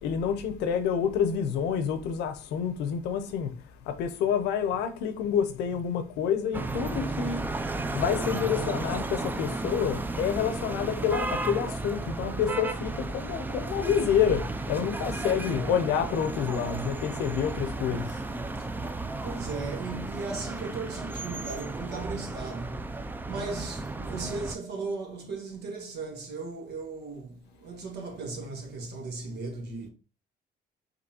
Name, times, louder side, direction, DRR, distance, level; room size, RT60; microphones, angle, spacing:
voice 1, 0.0-3.5 3.9-7.4 7.9-18.2, left 8 dB, 85° left, 0.6 m, -28 dB
sound 1, 6.5-24.6, right 2 dB, 10° right, 0.3 m, -34 dB
voice 2, 19.2-22.9 23.3-29.9, right 3 dB, 75° right, 1.3 m, -37 dB
5.2 x 2.8 x 2.8 m
cardioid pair, 110°, 17 cm